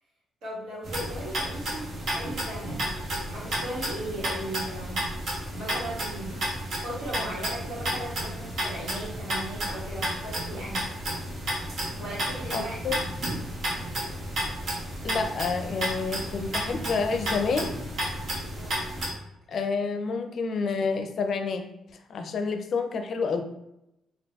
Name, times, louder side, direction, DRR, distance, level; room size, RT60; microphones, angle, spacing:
voice 1, 0.4-11.0 12.0-13.1 18.5-18.8, right 1 dB, 85° right, -7 dB, 1.4 m, -38 dB
sound 1, 0.8-19.1, equal, 65° right, 1.0 m, -32 dB
voice 2, 12.5-13.0 15.0-17.7 19.5-21.7 22.1-23.4, left 4 dB, 55° left, 6 dB, 0.4 m, -28 dB
4.0 x 2.5 x 2.3 m, 0.83 s
cardioid pair, 90°, 0 cm